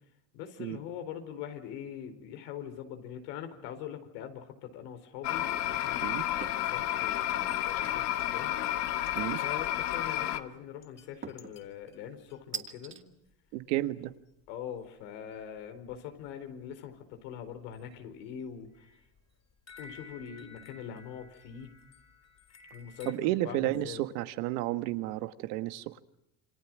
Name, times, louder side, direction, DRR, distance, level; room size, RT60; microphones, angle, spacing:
voice 1, 0.3-6.2 6.5-8.6 9.4-13.0 14.5-18.9 19.8-21.7 22.7-24.0, left 9 dB, 90° left, 7 dB, 4.5 m, -43 dB
sound 1, 5.2-10.4, left 13 dB, 55° left, 1.9 m, -31 dB
sound 2, 6.4-6.7 7.2-7.6 9.4-9.9 11.2-11.6 12.5-13.0, right 5 dB, 25° right, 2.2 m, -42 dB
sound 3, 7.4-7.6 7.9-8.0 8.4-8.5 8.7-9.4 9.8-9.9 10.1-10.3 10.8-12.5 13.3-13.4 13.6-13.8 14.0-14.1 14.5-14.7 15.0-15.1 15.3-16.3 16.7-16.8 17.2-18.0 18.4-23.1, left 3 dB, 30° left, 4.3 m, -55 dB
voice 2, 13.5-14.1 23.0-26.0, right 16 dB, 85° right, 10 dB, 1.6 m, -32 dB
28.5 x 25.5 x 6.2 m, 0.80 s
cardioid pair, 125°, 48 cm